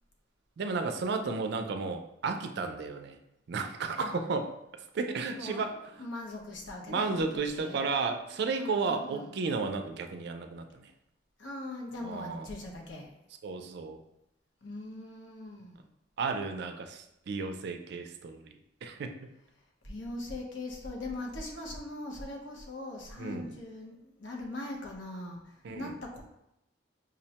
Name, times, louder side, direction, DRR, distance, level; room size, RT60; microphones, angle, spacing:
voice 1, 0.6-3.1 3.5-4.5 4.9-5.7 6.9-10.9 12.0-12.5 13.4-14.0 16.2-18.5 18.8-19.1 23.2-23.6 25.6-25.9, right 4 dB, 65° right, 6 dB, 0.4 m, -33 dB
voice 2, 5.3-5.7 6.0-7.9 8.6-9.3 11.4-13.2 14.6-15.9 19.8-26.2, left 2 dB, 85° left, 0 dB, 0.7 m, -41 dB
5.0 x 2.1 x 2.8 m, 0.86 s
head